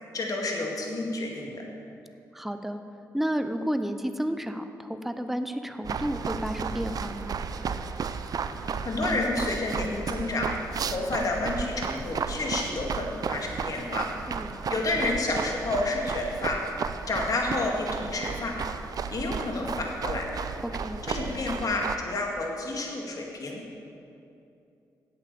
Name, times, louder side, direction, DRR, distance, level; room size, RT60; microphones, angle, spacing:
voice 1, 0.1-1.6 8.8-10.5 10.9-14.1 14.7-16.6 17.1-18.5 19.1-20.3 21.1-23.6, left 2 dB, 55° left, 0 dB, 2.1 m, -30 dB
voice 2, 2.3-2.8 3.1-7.4 14.3-14.5 20.7-21.0, equal, 5° right, 8 dB, 0.7 m, -31 dB
sound 1, 5.8-22.0, right 6 dB, 55° right, 0.5 m, -34 dB
8.5 x 8.2 x 6.9 m, 2.6 s
supercardioid pair, 50°, 7 cm